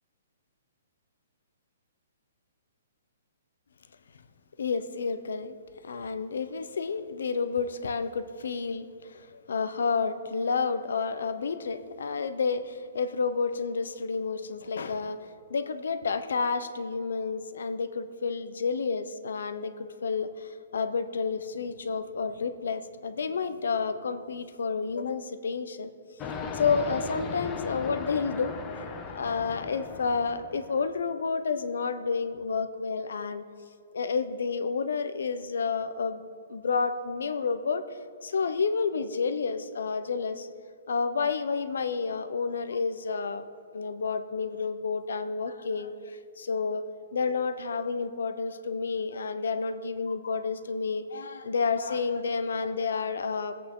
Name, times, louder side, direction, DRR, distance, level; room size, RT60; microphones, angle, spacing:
voice 1, 4.6-5.6 5.8-15.2 15.5-25.9 26.5-33.4 33.9-37.8 38.2-40.5 40.9-43.4 43.7-46.8 47.1-53.6, left 5 dB, 75° left, 11 dB, 0.8 m, -30 dB
sound 1, 26.2-30.9, left 5 dB, 15° left, 0.6 m, -37 dB
21.5 x 8.4 x 3.8 m, 2.3 s
hypercardioid pair, 175°, 0 cm